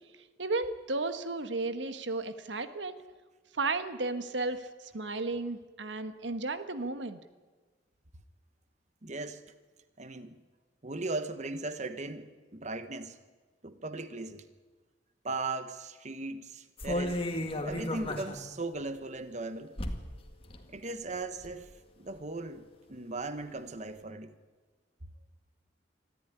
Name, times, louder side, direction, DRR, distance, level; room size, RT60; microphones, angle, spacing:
voice 1, 0.4-3.0 3.5-7.2, right 3 dB, 85° right, 1.4 m, -34 dB
voice 2, 9.0-9.4 10.0-10.4 10.8-13.2 13.6-14.4 15.2-17.2 17.6-19.7 20.7-21.7 22.0-24.3, right 2 dB, 40° right, 1.2 m, -38 dB
sound 1, 16.8-18.4 18.8-18.9 19.8-20.2 20.5-20.6 21.1-21.6 22.1-22.2, left 1 dB, 30° left, 2.1 m, -34 dB
25.0 x 14.0 x 10.0 m
head